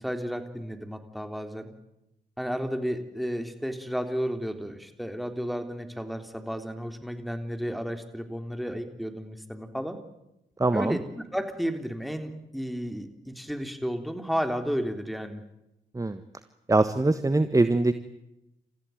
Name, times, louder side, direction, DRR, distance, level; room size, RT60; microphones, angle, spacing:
voice 1, 0.0-1.7 2.4-10.0 10.7-11.0 11.3-15.4, equal, ahead, 7 dB, 3.6 m, -32 dB
voice 2, 10.6-11.0 15.9-16.2 16.7-17.9, right 2 dB, 20° right, 11 dB, 1.3 m, -23 dB
29.5 x 15.0 x 9.3 m, 0.91 s
hypercardioid pair, 45°, 19 cm